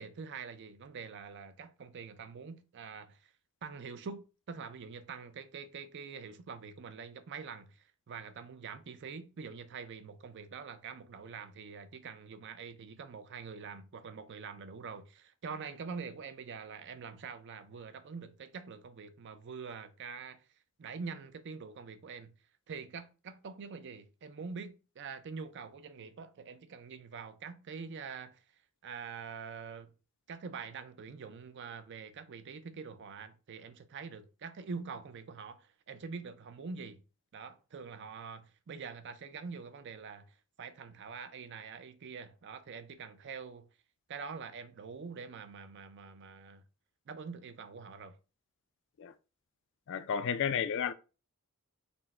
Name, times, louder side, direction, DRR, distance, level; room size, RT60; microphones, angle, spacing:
voice 1, 0.0-3.3 3.6-20.4 20.8-22.3 22.7-28.4 28.8-29.9 30.3-37.0 37.3-43.7 44.1-46.6 47.1-48.2, right 5 dB, 55° right, 0.4 m, -45 dB
voice 2, 49.9-50.9, left 7 dB, 55° left, 0.3 m, -32 dB
4.3 x 2.1 x 4.2 m
head